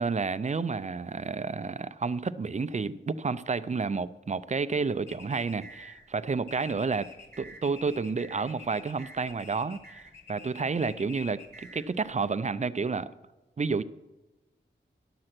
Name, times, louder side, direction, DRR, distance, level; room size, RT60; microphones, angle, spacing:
voice 1, 0.0-7.1 7.4-10.0 10.3-13.1 13.6-13.8, right 4 dB, 35° right, 14 dB, 0.5 m, -30 dB
sound 1, 5.1-12.1, left 2 dB, 10° left, 2.7 m, -48 dB
11.0 x 7.7 x 6.0 m, 1.1 s
cardioid pair, 55°, 20 cm